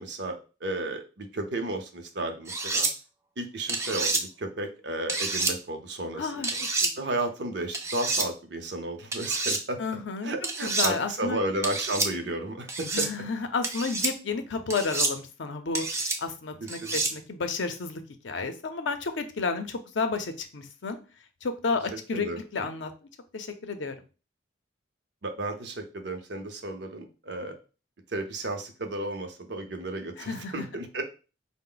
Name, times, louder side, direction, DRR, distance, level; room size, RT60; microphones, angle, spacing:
voice 1, 0.0-2.9 3.4-6.6 7.0-9.8 10.2-13.1 16.6-17.0 21.9-22.4 25.2-27.6 28.1-31.0, right 2 dB, 60° right, 6 dB, 0.7 m, -33 dB
sound 1, 2.5-2.9 3.7-4.2 5.1-5.5 6.4-6.9 7.7-8.3 9.1-9.6 10.4-10.9 11.6-12.1 12.7-13.1 13.6-14.1 14.7-15.1 15.7-16.2 16.7-17.1, right 3 dB, 15° right, 0.4 m, -28 dB
voice 2, 6.2-6.5 6.8-6.9 9.8-10.3 10.6-11.4 12.9-15.9 16.2-21.0 21.4-22.3 22.5-22.9 23.3-23.9 30.2-30.7, left 4 dB, 70° left, 7 dB, 0.6 m, -31 dB
4.5 x 2.1 x 3.8 m, 0.33 s
head